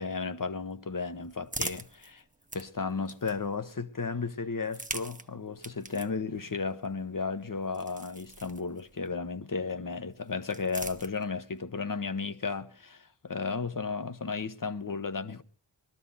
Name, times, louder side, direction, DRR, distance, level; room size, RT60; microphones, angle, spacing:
voice 1, 0.0-2.2 2.5-15.4, left 4 dB, 45° left, 1.0 m, -34 dB
sound 1, 0.7-3.7 4.5-9.1 10.1-11.6, right 2 dB, 15° right, 0.9 m, -44 dB
20.5 x 12.5 x 4.0 m
wide cardioid pair, 70°, 45 cm